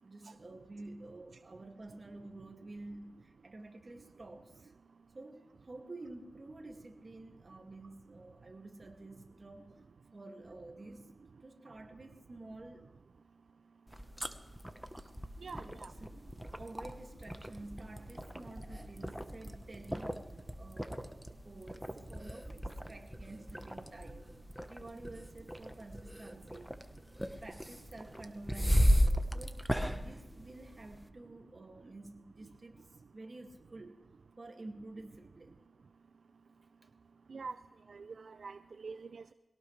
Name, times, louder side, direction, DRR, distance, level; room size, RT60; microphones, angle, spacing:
voice 1, 0.0-4.7 5.1-9.8 10.1-11.1 11.4-12.9 15.5-16.2 16.5-20.2 20.6-22.6 22.9-24.3 24.7-26.7 27.4-32.9 33.1-34.0 34.4-35.6, right 2 dB, 45° right, 4 dB, 2.2 m, -50 dB
sound 1, 13.9-31.1, equal, ahead, 1.1 m, -36 dB
voice 2, 15.4-15.9 37.3-37.6 37.9-39.3, right 4 dB, 80° right, 11 dB, 0.4 m, -45 dB
22.0 x 17.5 x 3.3 m, 1.2 s
wide cardioid pair, 65°, 0 cm